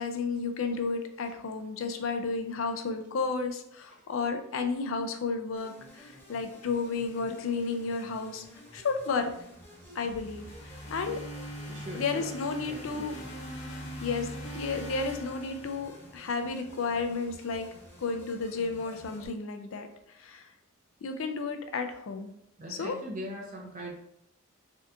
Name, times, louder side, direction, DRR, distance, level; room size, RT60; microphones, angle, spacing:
voice 1, 0.0-8.4 8.7-9.3 9.9-11.2 12.0-13.1 13.6-17.7 18.0-20.5 21.0-22.3 22.7-23.0, left 4 dB, 70° left, 7 dB, 0.4 m, -32 dB
sound 1, 5.6-19.3, equal, 10° left, 0.7 m, -52 dB
sound 2, 10.1-16.3, equal, 90° left, 1.0 m, -42 dB
voice 2, 11.7-13.3 22.6-23.9, equal, 35° right, -3 dB, 0.5 m, -42 dB
3.4 x 2.8 x 2.4 m, 0.76 s
head